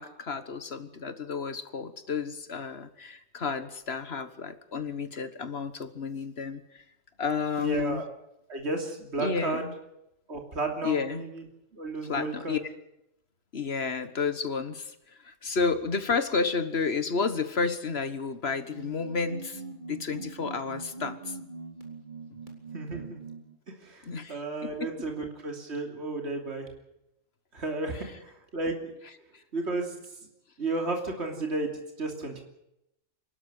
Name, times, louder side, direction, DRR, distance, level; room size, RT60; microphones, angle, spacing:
voice 1, 0.0-6.8 7.2-8.0 9.2-9.7 10.8-11.2 12.1-12.6 13.5-19.6 19.9-21.4 24.0-24.4, left 5 dB, 55° left, 11 dB, 1.6 m, -31 dB
voice 2, 7.6-8.1 8.5-9.6 10.3-11.4 11.7-12.6 22.7-23.2 23.8-26.7 27.5-28.9 29.5-29.9 30.6-32.4, right 2 dB, 55° right, 3 dB, 3.3 m, -33 dB
sound 1, 18.4-23.6, right 4 dB, 35° right, 3.7 m, -43 dB
26.5 x 12.0 x 9.6 m, 0.84 s
omnidirectional pair, 1.3 m